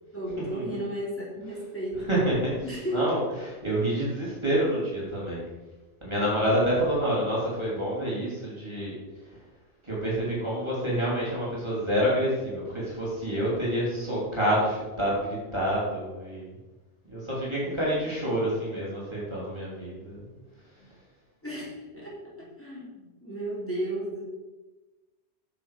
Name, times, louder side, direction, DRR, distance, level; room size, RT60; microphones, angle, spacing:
voice 1, 0.0-2.4 2.6-3.0 17.7-18.1 20.8-20.9 21.4-24.2, right 1 dB, 10° left, -6 dB, 3.2 m, -34 dB
voice 2, 2.9-5.4 6.0-8.9 9.8-16.5 17.1-20.2, equal, 25° right, -7 dB, 3.5 m, -28 dB
9.6 x 7.8 x 5.1 m, 1.1 s
omnidirectional pair, 1.2 m